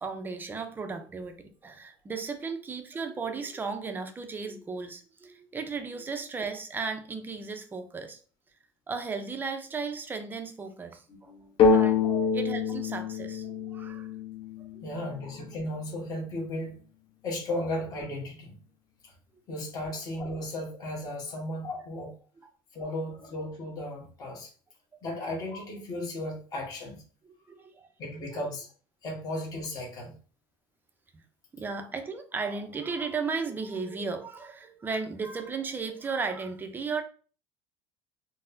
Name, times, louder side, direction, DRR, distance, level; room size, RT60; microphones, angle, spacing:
voice 1, 0.0-8.2 8.9-11.3 11.7-12.0 12.3-14.1 14.7-14.8 27.5-27.9 28.3-28.4 31.5-37.0, right 4 dB, 15° right, 0.5 m, -35 dB
voice 2, 11.1-11.5 12.0-12.2 14.8-16.8 17.2-18.6 19.0-19.1 19.5-22.1 22.7-24.5 25.0-27.0 28.0-28.7 29.0-30.1, left 1 dB, 35° left, 1.1 m, -35 dB
sound 1, 11.6-15.3, left 5 dB, 50° left, 0.8 m, -26 dB
4.1 x 2.0 x 2.6 m
cardioid pair, 125°, 11 cm